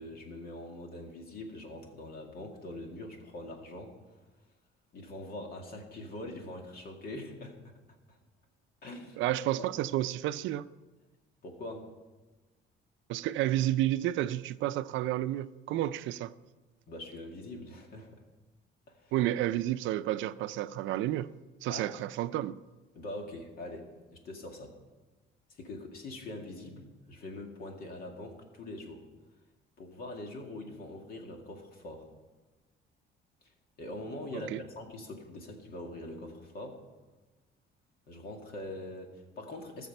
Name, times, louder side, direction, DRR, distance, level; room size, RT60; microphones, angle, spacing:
voice 1, 0.0-4.0 4.9-7.7 8.1-8.2 8.8-9.2 11.4-11.9 16.9-18.2 18.9-19.1 21.7-21.9 23.0-24.7 25.5-29.1 29.8-32.1 33.4-33.5 33.8-36.8 38.1-39.9, left 1 dB, 50° left, 2.1 m, -43 dB
voice 2, 9.2-10.7 13.1-16.3 19.1-21.3 21.6-22.6 34.3-34.6, right 14 dB, 80° right, 0.5 m, -31 dB
18.5 x 6.8 x 5.4 m
cardioid pair, 165°, 19 cm